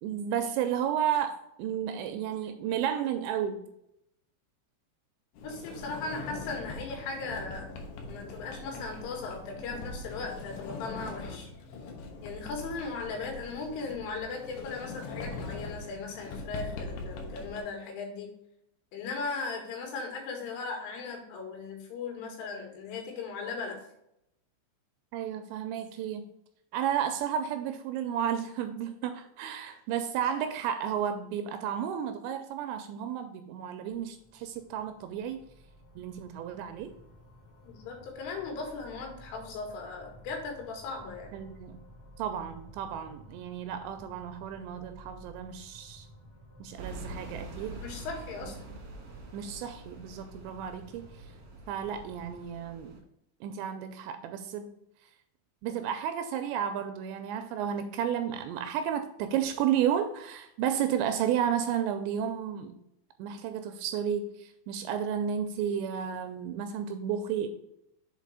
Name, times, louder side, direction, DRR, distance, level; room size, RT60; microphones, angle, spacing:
voice 1, 0.0-3.6 25.1-26.2 26.7-35.4 36.0-36.9 41.3-41.8 42.2-46.1 46.6-47.8 48.4-48.5 49.3-51.1 51.7-53.0 53.4-54.7 55.6-62.7 63.2-67.5, right 9 dB, 85° right, 8 dB, 2.6 m, -32 dB
voice 2, 5.4-7.8 8.1-11.5 12.2-18.3 18.9-23.8 37.6-41.4 47.8-48.7, left 4 dB, 90° left, 2 dB, 4.2 m, -38 dB
Sliding door, 5.4-17.6, left 3 dB, 70° left, 2.8 m, -41 dB
sound 1, 33.9-52.5, equal, 40° left, 1.4 m, -54 dB
sound 2, 46.8-53.0, right 2 dB, 60° right, 1.8 m, -45 dB
7.4 x 4.2 x 4.8 m, 0.79 s
omnidirectional pair, 5.5 m